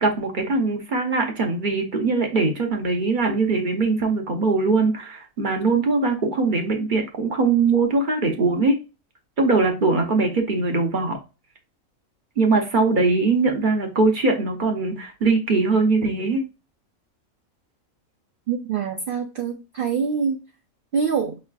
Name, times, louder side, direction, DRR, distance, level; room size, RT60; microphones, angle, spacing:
voice 1, 0.0-8.8 9.4-11.2 12.4-16.4, right 3 dB, 45° right, 0.8 m, -21 dB
voice 2, 18.5-20.4 20.9-21.4, right 6 dB, 75° right, 0.5 m, -25 dB
5.3 x 3.2 x 2.2 m
omnidirectional pair, 1.5 m